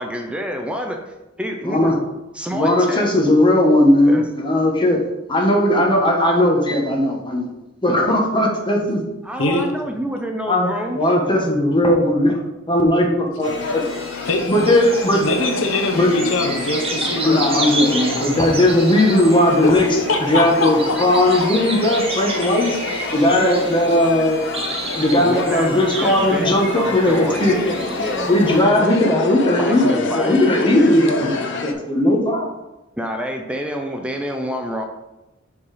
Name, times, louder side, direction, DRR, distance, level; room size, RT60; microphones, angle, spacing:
voice 1, 0.0-1.0 1.4-1.9 2.3-3.1 4.0-4.2 9.2-11.0 25.2-29.0 29.6-30.9 33.0-34.8, equal, 5° right, 3 dB, 0.5 m, -28 dB
voice 2, 1.6-1.9 2.5-5.0 5.3-7.4 7.8-9.0 10.5-10.7 10.9-12.4 12.7-13.8 14.5-15.3 15.9-16.1 17.2-19.9 20.2-22.7 23.1-24.4 25.0-27.7 28.3-32.5, left 1 dB, 25° left, 0 dB, 1.3 m, -17 dB
sound 1, 13.4-31.7, left 4 dB, 65° left, 0.7 m, -28 dB
sound 2, 13.4-28.6, right 2 dB, 30° right, 0.9 m, -31 dB
voice 3, 15.2-17.7 19.6-19.7 20.1-21.0 21.4-21.5, left 2 dB, 80° left, 4 dB, 0.9 m, -22 dB
5.5 x 4.7 x 4.9 m, 0.97 s
head